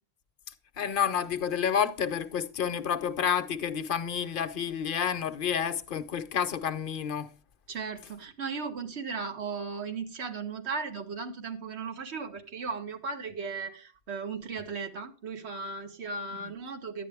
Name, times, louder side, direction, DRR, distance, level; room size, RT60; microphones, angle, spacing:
voice 1, 0.8-7.3, left 7 dB, 60° left, 0.8 m, -29 dB
voice 2, 7.7-17.1, right 4 dB, 80° right, 1.3 m, -36 dB
11.5 x 9.2 x 3.4 m
omnidirectional pair, 1.1 m